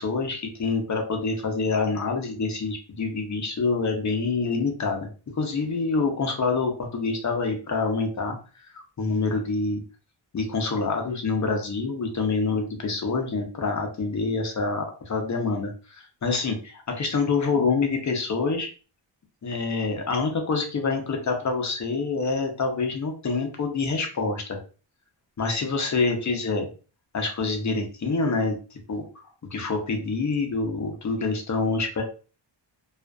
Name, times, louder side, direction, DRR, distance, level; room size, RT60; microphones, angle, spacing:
voice 1, 0.0-5.1 5.3-8.4 8.7-9.8 10.3-18.7 19.4-24.6 25.4-26.7 27.1-29.0 29.5-32.0, left 4 dB, 40° left, 3 dB, 0.6 m, -26 dB
2.4 x 2.3 x 2.2 m, 0.36 s
wide cardioid pair, 115°, 46 cm